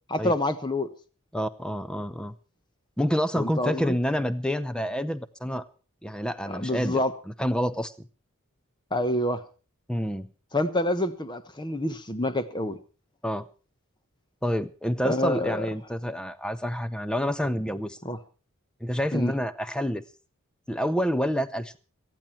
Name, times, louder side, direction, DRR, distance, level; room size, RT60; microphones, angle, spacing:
voice 1, 0.1-0.9 3.4-3.9 6.5-7.1 8.9-9.4 10.5-12.8 15.0-15.7 18.0-18.2 19.1-19.3, left 1 dB, 20° left, 11 dB, 1.2 m, -27 dB
voice 2, 1.3-2.3 3.0-5.6 6.0-7.0 7.4-8.1 9.9-10.3 13.2-13.4 14.4-18.0 18.8-20.0 20.7-21.8, equal, 5° left, 14 dB, 0.7 m, -28 dB
18.0 x 14.0 x 4.4 m, 0.36 s
head